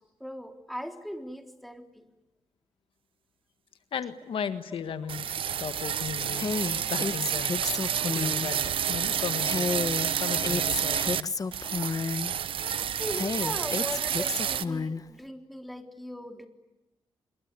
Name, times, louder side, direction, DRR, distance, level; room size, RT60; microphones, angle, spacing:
voice 1, 0.2-2.1 13.0-16.5, equal, ahead, 5 dB, 3.6 m, -39 dB
voice 2, 3.9-7.6 8.0-9.9 10.2-11.3, left 7 dB, 75° left, 10 dB, 1.6 m, -36 dB
sound 1, 5.1-11.2 11.5-14.6, right 9 dB, 80° right, 1.0 m, -29 dB
Female speech woman speaking, 6.3-8.5 9.4-12.3 13.1-15.0, left 4 dB, 40° left, 1.1 m, -31 dB
26.5 x 23.0 x 9.7 m, 0.98 s
cardioid pair, 80°, 9 cm